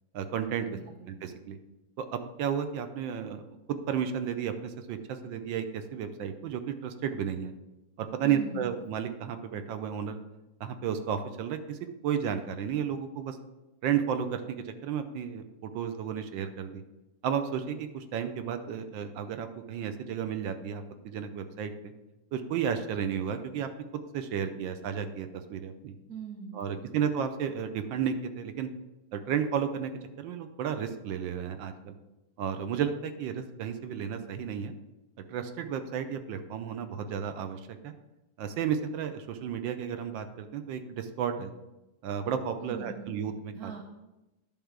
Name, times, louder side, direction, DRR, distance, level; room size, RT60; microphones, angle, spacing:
voice 1, 0.1-0.7 1.1-1.6 2.0-7.5 8.0-10.2 10.6-13.4 13.8-16.8 17.2-21.9 22.3-23.7 24.1-26.0 26.5-28.7 29.1-29.9 30.2-31.9 32.4-34.7 35.3-37.9 38.4-41.5 42.0-43.7, right 8 dB, 75° right, 8 dB, 1.4 m, -33 dB
voice 2, 0.7-1.2 8.2-8.8 26.1-27.1 42.6-43.1 43.5-43.8, right 7 dB, 55° right, 1 dB, 1.2 m, -42 dB
10.5 x 3.6 x 5.9 m, 0.99 s
omnidirectional pair, 2.1 m